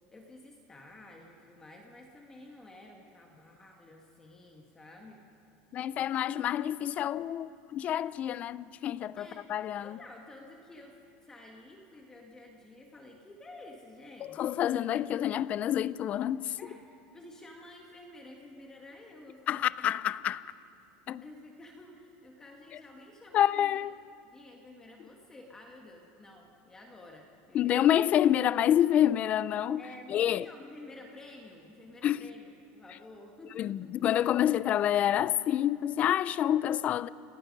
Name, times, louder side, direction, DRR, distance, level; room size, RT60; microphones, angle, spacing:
voice 1, 0.1-5.2 5.9-6.5 9.1-9.4 9.8-14.9 16.6-20.0 21.2-23.9 24.3-27.9 29.8-34.0, left 2 dB, 10° left, 1.6 m, -51 dB
voice 2, 5.7-10.0 14.3-16.6 19.5-20.4 21.1-21.2 23.3-24.0 27.5-29.8 30.1-30.5 32.0-32.2 33.6-37.1, left 11 dB, 30° left, 0.4 m, -28 dB
29.0 x 17.5 x 5.3 m
cardioid pair, 160°, 5 cm